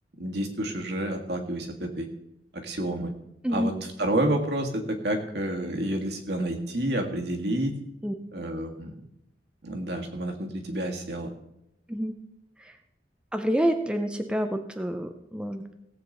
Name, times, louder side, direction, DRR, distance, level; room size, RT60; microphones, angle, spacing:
voice 1, 0.2-2.1 2.5-3.1 3.5-3.7 4.0-7.7 8.3-8.9 9.6-11.3, right 1 dB, 65° right, 3 dB, 1.7 m, -29 dB
voice 2, 13.3-15.7, equal, 5° right, 6 dB, 0.6 m, -28 dB
17.0 x 8.0 x 3.9 m, 0.84 s
head